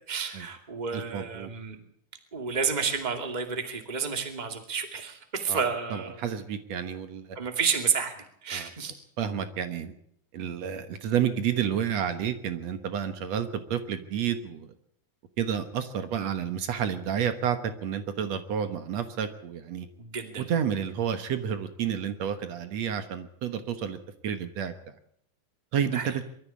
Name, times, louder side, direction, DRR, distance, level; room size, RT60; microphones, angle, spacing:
voice 1, 0.1-1.8 2.3-6.2 7.3-8.9 20.0-20.5 25.9-26.1, right 6 dB, 15° right, 5 dB, 1.8 m, -30 dB
voice 2, 0.9-1.5 5.5-5.6 5.9-7.4 8.5-8.7 9.2-9.9 10.3-14.7 15.4-19.9 20.4-24.0 24.2-24.7 25.7-26.2, right 8 dB, 60° right, 9 dB, 2.0 m, -30 dB
23.0 x 13.5 x 8.6 m, 0.70 s
omnidirectional pair, 4.3 m